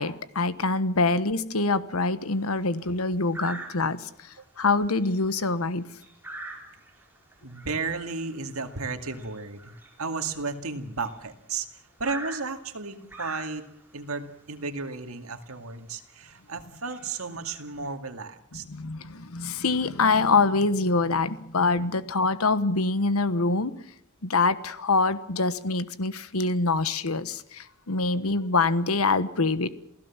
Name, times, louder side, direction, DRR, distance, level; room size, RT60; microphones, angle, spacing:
voice 1, 0.0-4.1 4.6-5.9 18.5-23.7 24.2-29.8, left 3 dB, 85° left, 14 dB, 1.2 m, -25 dB
sound 1, 2.2-2.6 3.3-4.1 4.6-4.8 5.0-11.3 12.0-13.9 14.9-15.0 15.4-15.5 16.1-16.3 16.8-17.9, right 2 dB, 10° right, 5.0 m, -43 dB
voice 2, 7.4-11.7 12.0-13.6 13.9-18.6, right 4 dB, 80° right, 7 dB, 2.3 m, -34 dB
28.0 x 17.0 x 7.3 m, 0.71 s
head